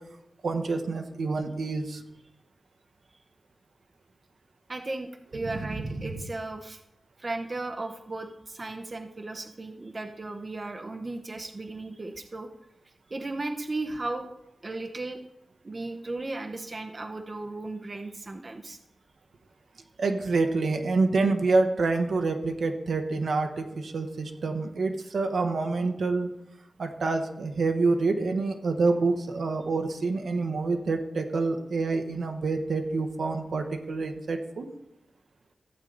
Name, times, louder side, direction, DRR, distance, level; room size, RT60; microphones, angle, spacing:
voice 1, 0.4-2.0 5.5-5.6 20.0-26.3 26.8-34.7, right 3 dB, 75° right, 5 dB, 1.1 m, -27 dB
voice 2, 4.7-6.8 7.2-12.5 12.8-14.3 14.6-15.2 15.6-18.8, right 2 dB, 35° right, 4 dB, 0.7 m, -36 dB
14.5 x 8.2 x 3.9 m, 0.87 s
wide cardioid pair, 140°, 0 cm